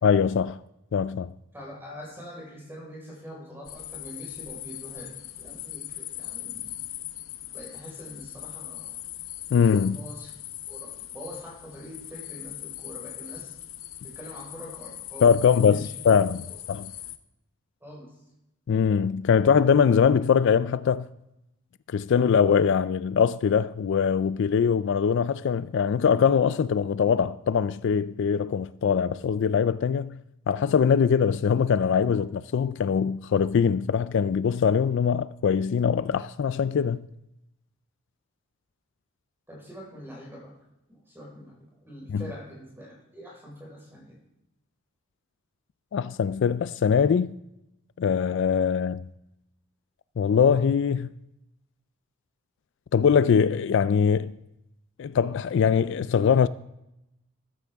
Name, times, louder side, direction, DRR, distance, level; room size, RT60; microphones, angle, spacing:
voice 1, 0.0-0.6 0.9-1.3 9.5-10.0 15.2-16.4 16.7-16.9 18.7-21.1 21.9-30.2 30.5-37.1 42.1-42.3 45.9-47.4 48.0-49.1 50.2-51.1 52.9-54.3 55.0-56.5, left 7 dB, 60° left, 0.3 m, -22 dB
voice 2, 1.5-6.7 7.5-9.0 9.5-10.3 10.7-13.6 14.0-16.1 16.5-16.6 17.8-18.1 39.5-40.6 40.9-44.2, equal, 10° right, 4.7 m, -44 dB
sound 1, 3.6-17.2, left 13 dB, 85° left, 0.8 m, -40 dB
14.5 x 14.0 x 3.5 m
head